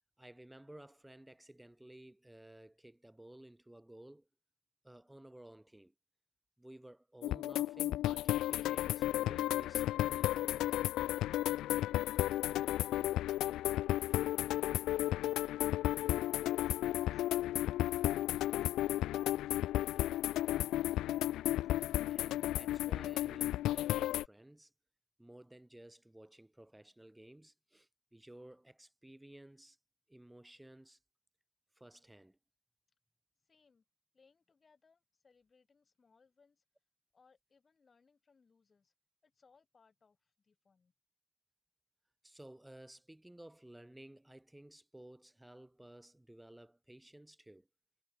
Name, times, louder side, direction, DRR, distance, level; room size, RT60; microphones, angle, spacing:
voice 1, 0.2-4.3 4.8-5.9 6.6-10.9 21.6-21.7 22.1-24.7 25.2-29.8 30.1-31.0 31.7-32.4 42.2-47.7, right 1 dB, 5° right, 4.9 m, -56 dB
sound 1, 7.2-24.3, left 14 dB, 65° left, 0.3 m, -33 dB
voice 2, 33.4-33.8 34.1-36.6 37.1-38.9 39.2-40.9, left 5 dB, 25° left, 4.0 m, -70 dB
cardioid pair, 105°, 0 cm